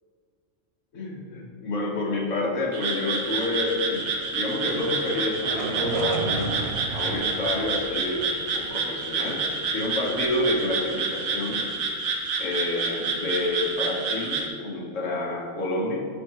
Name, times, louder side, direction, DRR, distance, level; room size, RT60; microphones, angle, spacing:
voice 1, 0.9-6.6 6.9-8.3 8.5-9.4 9.7-11.7 12.4-16.0, left 2 dB, 65° left, -2 dB, 1.7 m, -28 dB
Frog, 2.7-14.5, right 4 dB, 85° right, 1.4 m, -29 dB
sound 1, 3.6-12.1, right 4 dB, 65° right, 0.7 m, -37 dB
12.0 x 4.7 x 3.1 m, 2.1 s
omnidirectional pair, 1.4 m